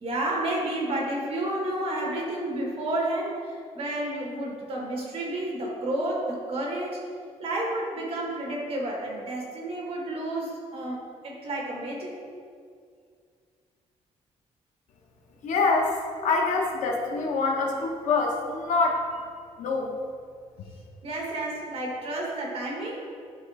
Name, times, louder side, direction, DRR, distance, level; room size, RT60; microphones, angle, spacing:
voice 1, 0.0-7.0 7.4-12.1 21.0-23.1, right 1 dB, 50° right, -1 dB, 1.7 m, -31 dB
voice 2, 15.4-19.0 19.6-19.9, left 3 dB, 85° left, 1 dB, 1.1 m, -25 dB
11.0 x 4.4 x 3.5 m, 2.1 s
cardioid pair, 130°, 12 cm